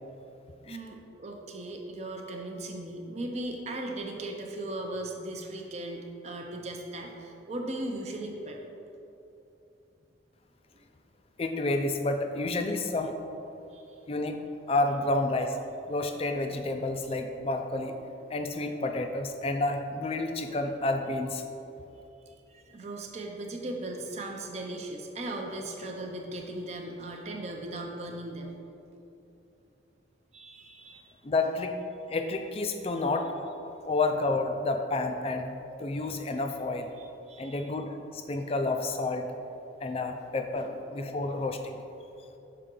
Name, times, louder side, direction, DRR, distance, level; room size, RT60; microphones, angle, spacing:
voice 1, 0.6-8.6 13.7-14.0 22.3-28.6 30.3-31.1 37.3-37.7 40.5-40.8, right 1 dB, 35° right, 1 dB, 0.5 m, -38 dB
voice 2, 11.4-13.1 14.1-14.4 14.7-15.6 15.9-18.0 18.3-21.4 31.2-31.8 32.1-35.5 35.8-36.9 37.4-39.3 39.8-41.7, left 2 dB, 30° left, 6 dB, 0.4 m, -30 dB
6.6 x 4.7 x 3.7 m, 2.8 s
head